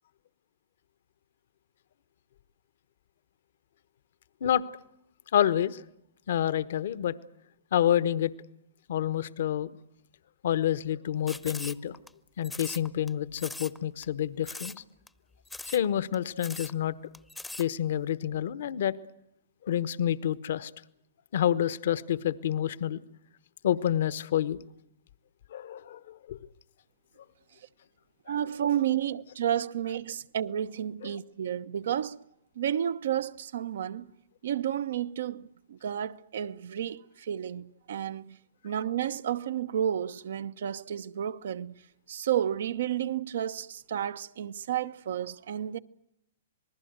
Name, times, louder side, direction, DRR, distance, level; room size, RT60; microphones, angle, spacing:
voice 1, 5.3-5.8 6.3-7.2 7.7-8.3 8.9-9.7 10.4-11.9 12.4-14.7 15.7-17.0 17.6-19.0 19.6-20.7 21.3-23.0 23.6-24.6 25.5-26.4, left 10 dB, 65° left, 1.1 m, -28 dB
sound 1, 11.3-12.1 12.4-13.1 13.4-13.8 14.0-14.1 14.4-14.8 15.1-15.2 15.5-15.9 16.1-16.2 16.4-16.7 17.1-17.7, left 2 dB, 5° left, 0.9 m, -40 dB
voice 2, 28.3-32.2 32.6-34.1 34.4-38.4 38.6-45.8, right 10 dB, 70° right, 0.9 m, -31 dB
27.0 x 20.0 x 8.1 m
hypercardioid pair, 130°, 0 cm